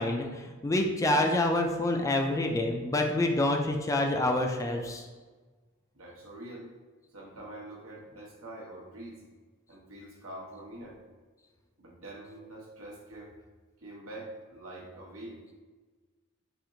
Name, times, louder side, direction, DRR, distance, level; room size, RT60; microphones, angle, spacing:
voice 1, 0.0-5.1, left 1 dB, 15° left, 3 dB, 0.3 m, -27 dB
voice 2, 5.9-6.7 7.1-9.2 9.7-11.0 11.8-13.3 13.8-15.4, right 1 dB, 85° right, -1 dB, 1.0 m, -45 dB
4.3 x 2.5 x 3.8 m, 1.4 s
head